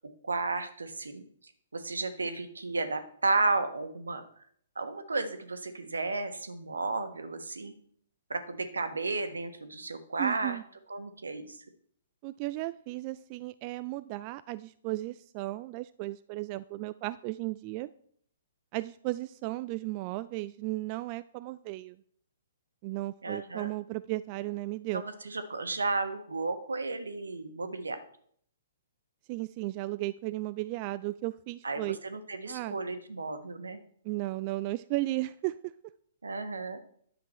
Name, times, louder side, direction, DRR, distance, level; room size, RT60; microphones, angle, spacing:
voice 1, 0.2-1.3 1.7-4.2 4.8-7.7 8.3-10.6 10.9-11.6 23.2-23.7 24.9-28.0 31.6-33.8 36.2-36.8, right 3 dB, 80° right, 9 dB, 1.3 m, -33 dB
voice 2, 10.2-10.6 12.2-17.9 18.7-22.0 22.8-25.0 29.3-32.0 32.5-32.8 34.0-35.5, right 18 dB, 35° right, 15 dB, 0.3 m, -35 dB
10.0 x 7.6 x 4.3 m, 0.63 s
figure-of-eight pair, 125°, 0 cm